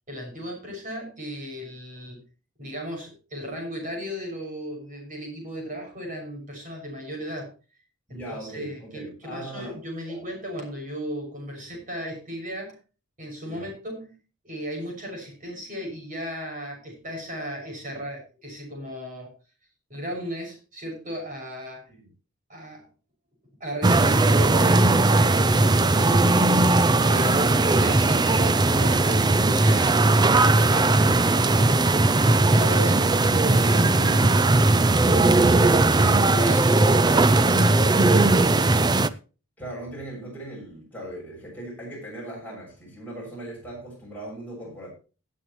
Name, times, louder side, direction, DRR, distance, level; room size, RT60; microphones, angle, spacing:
voice 1, 0.1-2.2 2.6-7.5 8.1-12.8 13.2-14.2 14.4-19.3 19.9-21.9 22.5-22.9 23.6-30.2 31.8-38.6, equal, 40° right, 6.2 m, -35 dB
voice 2, 8.1-9.8 10.1-10.3 13.5-13.7 21.9-22.0 39.6-44.9, right 1 dB, 10° left, 7.1 m, -39 dB
sound 1, 23.8-39.1, right 2 dB, 20° right, 0.5 m, -19 dB
18.5 x 8.4 x 3.1 m
head